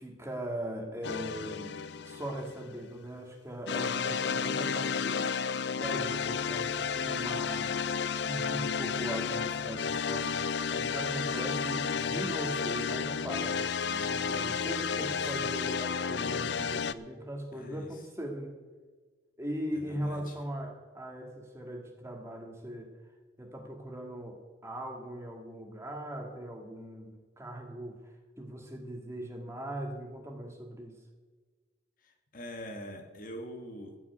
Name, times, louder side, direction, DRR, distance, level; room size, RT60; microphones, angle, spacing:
voice 1, 0.0-1.8 2.0-5.3 5.8-7.7 8.2-18.6 19.4-22.9 23.4-28.0 28.4-31.0, right 1 dB, 15° right, 1 dB, 2.0 m, -40 dB
sound 1, 1.0-2.8 3.7-16.9, left 6 dB, 60° left, 0.5 m, -32 dB
voice 2, 14.3-15.3 17.5-18.0 19.7-20.4 32.0-34.0, equal, 45° left, 4 dB, 1.5 m, -44 dB
15.5 x 6.0 x 9.4 m, 1.4 s
head